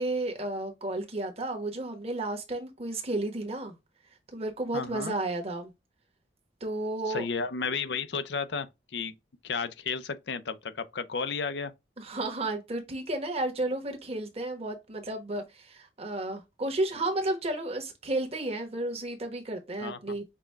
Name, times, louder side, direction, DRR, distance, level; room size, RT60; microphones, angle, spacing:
voice 1, 0.0-3.8 4.3-5.7 6.6-7.2 12.0-20.2, right 2 dB, 35° right, 1.2 m, -32 dB
voice 2, 4.7-5.1 7.1-8.7 8.9-9.1 9.4-11.7 19.8-20.2, left 5 dB, 70° left, 0.6 m, -33 dB
5.9 x 2.3 x 3.4 m
head